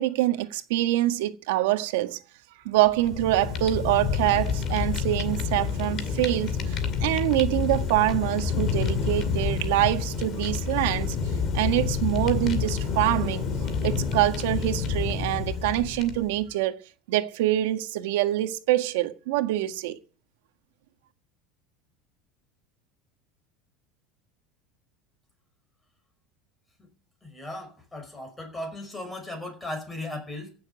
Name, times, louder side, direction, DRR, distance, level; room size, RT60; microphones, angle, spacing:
voice 1, 0.0-2.2 2.6-11.2 11.5-13.4 13.8-16.8 17.1-20.0, right 15 dB, 80° right, 1.6 m, -25 dB
Fire, 2.8-16.4, left 6 dB, 35° left, 2.2 m, -28 dB
voice 2, 27.2-30.5, left 1 dB, 10° left, 5.4 m, -37 dB
16.0 x 7.3 x 9.3 m
cardioid pair, 160°, 0 cm